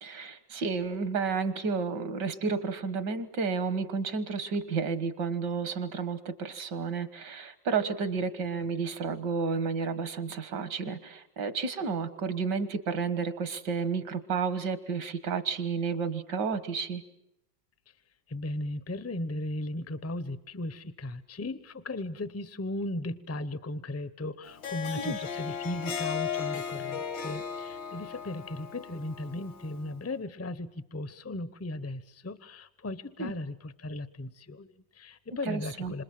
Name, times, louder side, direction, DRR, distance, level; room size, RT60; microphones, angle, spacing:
voice 1, 0.0-17.0 25.0-25.2 33.2-33.3 35.5-35.9, right 5 dB, 70° right, 12 dB, 2.1 m, -31 dB
voice 2, 18.3-36.0, left 1 dB, 15° left, 15 dB, 0.5 m, -37 dB
Harp, 24.5-29.9, left 7 dB, 85° left, 2.6 m, -36 dB
27.5 x 27.0 x 7.7 m, 0.83 s
omnidirectional pair, 1.9 m